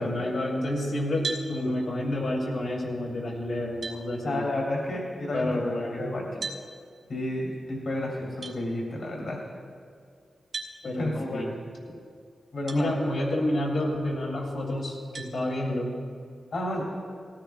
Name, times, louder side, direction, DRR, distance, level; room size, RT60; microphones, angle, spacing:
voice 1, 0.0-4.4 5.3-6.1 10.8-11.5 12.7-16.0, left 1 dB, 75° left, -4 dB, 2.6 m, -29 dB
sound 1, 1.2-1.5 3.2-3.3 3.8-4.0 6.4-6.6 8.4-8.6 10.5-10.8 12.7-12.8 13.5-13.6 15.1-15.3, right 4 dB, 60° right, 1.3 m, -34 dB
voice 2, 4.2-5.5 5.9-6.4 7.1-9.4 11.0-11.5 12.5-13.2 16.5-16.8, left 1 dB, 60° left, -2 dB, 2.6 m, -31 dB
19.0 x 16.0 x 2.3 m, 2.1 s
wide cardioid pair, 175°, 0 cm